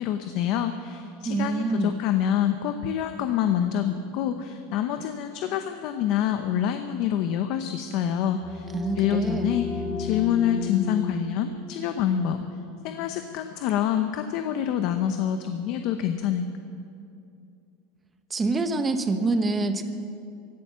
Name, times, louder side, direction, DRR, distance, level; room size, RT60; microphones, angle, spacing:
voice 1, 0.0-8.7 9.0-12.4 12.8-16.5, left 9 dB, 50° left, 8 dB, 0.8 m, -26 dB
voice 2, 1.2-2.0 8.7-9.5 18.3-19.8, right 3 dB, 15° right, 8 dB, 1.0 m, -26 dB
sound 1, 8.2-13.6, left 6 dB, 30° left, 3.9 m, -35 dB
16.5 x 11.5 x 7.5 m, 2.6 s
supercardioid pair, 145°, 0 cm